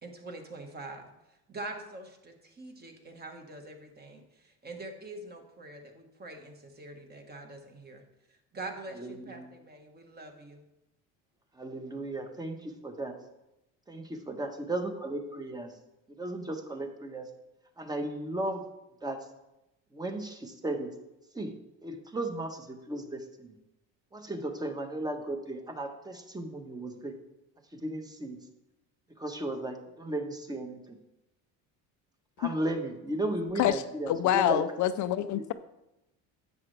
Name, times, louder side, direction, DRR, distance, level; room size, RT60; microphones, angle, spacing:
voice 1, 0.0-8.0 8.3-10.7, right 2 dB, 30° right, 3 dB, 1.4 m, -44 dB
voice 2, 9.0-9.5 11.5-13.2 13.9-15.7 16.1-17.3 17.8-18.6 19.0-19.2 19.9-20.9 21.3-21.5 21.8-23.5 24.1-27.2 27.7-28.4 29.2-31.0 32.4-34.6 35.3-35.5, right 1 dB, 10° right, 5 dB, 1.1 m, -35 dB
voice 3, 33.6-35.5, left 12 dB, 60° left, 11 dB, 0.5 m, -27 dB
10.5 x 7.8 x 3.3 m, 0.92 s
cardioid pair, 120°, 34 cm